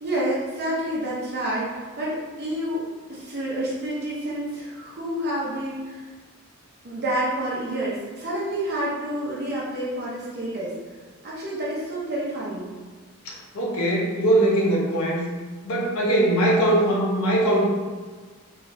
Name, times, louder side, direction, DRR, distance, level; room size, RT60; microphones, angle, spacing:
voice 1, 0.0-6.1 6.8-10.7 11.2-12.7, right 1 dB, 45° right, -6 dB, 0.5 m, -29 dB
voice 2, 13.2-15.2 15.6-17.6, right 1 dB, 75° left, -3 dB, 0.6 m, -21 dB
3.0 x 2.3 x 2.6 m, 1.4 s
head